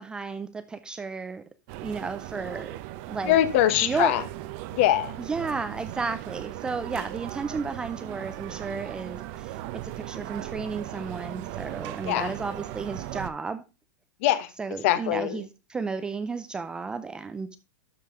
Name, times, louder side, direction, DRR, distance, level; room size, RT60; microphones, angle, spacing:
voice 1, 0.0-1.4 1.8-2.7 3.1-3.4 3.8-4.1 5.3-9.6 10.0-13.6 14.6-17.6, right 4 dB, 10° right, 0.4 m, -33 dB
sound 1, 1.7-13.3, right 14 dB, 35° right, 0.7 m, -38 dB
voice 2, 3.2-4.2 4.7-5.2 12.0-12.3 14.2-14.5 14.8-15.4, left 13 dB, 45° left, 1.0 m, -23 dB
12.5 x 5.4 x 3.7 m
supercardioid pair, 165°, 10 cm